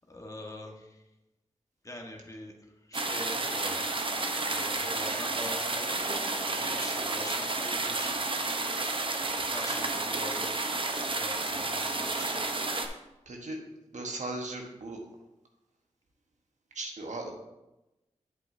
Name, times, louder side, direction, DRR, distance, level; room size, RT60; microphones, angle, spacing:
voice 1, 0.1-1.0 1.8-2.5 2.8-4.0 4.5-8.3 9.5-10.6 11.0-12.4, left 1 dB, 25° left, 1 dB, 1.5 m, -44 dB
sound 1, 2.9-12.9, right 2 dB, 45° right, 0.9 m, -31 dB
voice 2, 13.3-13.6 13.9-15.0 16.7-17.3, right 2 dB, 75° right, 1 dB, 1.3 m, -37 dB
8.3 x 7.8 x 2.8 m, 0.97 s
cardioid pair, 50°, 13 cm